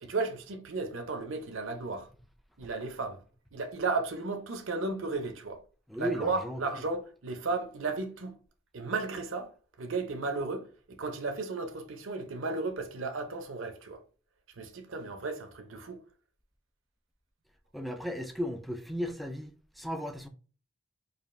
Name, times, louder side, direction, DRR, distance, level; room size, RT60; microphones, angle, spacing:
voice 1, 0.0-2.1 2.6-3.2 3.5-5.6 6.0-8.3 8.7-9.5 9.8-14.0 14.6-16.0, right 3 dB, 75° right, 0.7 m, -34 dB
voice 2, 5.9-6.6 17.7-20.3, equal, ahead, 0.3 m, -35 dB
5.0 x 2.4 x 2.5 m
head